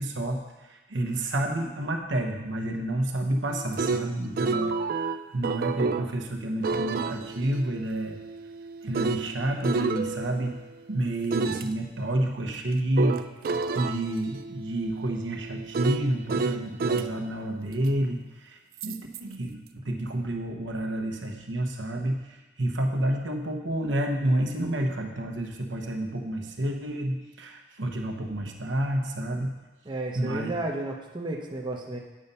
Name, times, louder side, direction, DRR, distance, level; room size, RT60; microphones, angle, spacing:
voice 1, 0.0-8.2 8.8-10.6 10.9-13.2 13.7-29.5 30.1-30.5, right 1 dB, 80° right, 3 dB, 1.0 m, -29 dB
sound 1, 3.5-6.1 6.6-10.7 11.3-11.7 13.0-17.1 18.8-19.2, right 4 dB, 50° right, 0.3 m, -30 dB
voice 2, 29.9-32.0, right 2 dB, 25° right, 0 dB, 0.7 m, -32 dB
8.6 x 5.5 x 5.4 m, 1.1 s
head